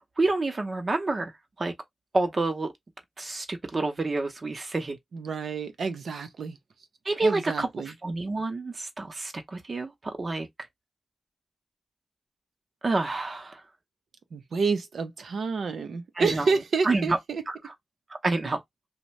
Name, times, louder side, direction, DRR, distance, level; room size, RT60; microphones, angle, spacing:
voice 1, 0.2-1.3 1.6-1.7 2.1-2.7 3.2-5.0 7.0-7.7 8.0-10.5 12.8-13.6 16.2-16.5 16.8-17.2 17.5-17.6 18.2-18.6, right 2 dB, 45° right, 0.7 m, -28 dB
voice 2, 5.1-6.6 7.2-7.9 14.3-17.4, right 4 dB, 80° right, 0.6 m, -29 dB
2.7 x 2.1 x 3.1 m
cardioid pair, 70°, 0 cm